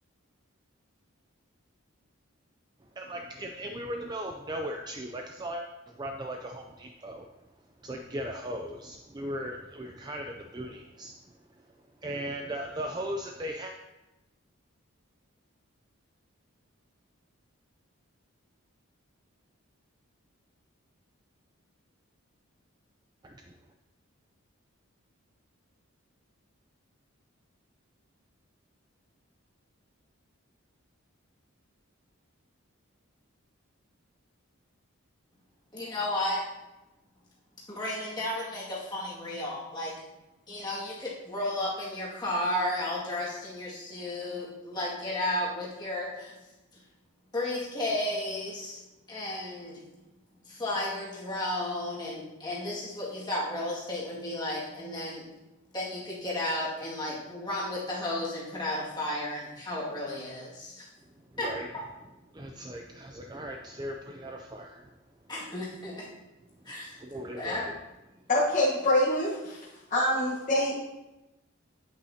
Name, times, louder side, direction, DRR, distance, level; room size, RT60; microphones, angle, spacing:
voice 1, 3.0-7.3 7.8-11.2 12.0-13.7 23.2-23.4 61.3-61.7 62.3-64.9 67.0-67.7, equal, 20° right, 3 dB, 0.3 m, -38 dB
voice 2, 35.7-36.4 37.7-39.9 40.5-46.4 47.3-48.8 49.1-49.8 50.4-55.2 55.7-60.9 61.4-61.5 61.7-61.8 65.3-66.1 66.6-67.0 67.3-67.7, left 1 dB, 20° left, -7 dB, 2.0 m, -33 dB
voice 3, 68.3-69.6 69.9-70.8, left 1 dB, 35° left, -7 dB, 1.2 m, -25 dB
8.3 x 8.2 x 2.8 m, 1.0 s
head